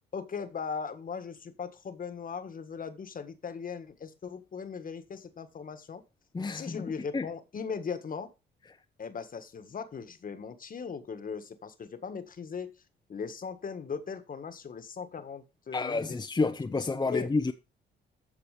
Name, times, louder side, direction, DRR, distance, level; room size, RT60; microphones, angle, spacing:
voice 1, 0.1-6.0 6.5-8.3 9.0-12.7 13.1-16.2 16.9-17.3, left 6 dB, 45° left, 1.7 m, -38 dB
voice 2, 6.3-6.8 7.1-7.3 15.7-17.5, left 3 dB, 20° left, 0.9 m, -29 dB
14.0 x 4.8 x 5.0 m
cardioid pair, 90°, 20 cm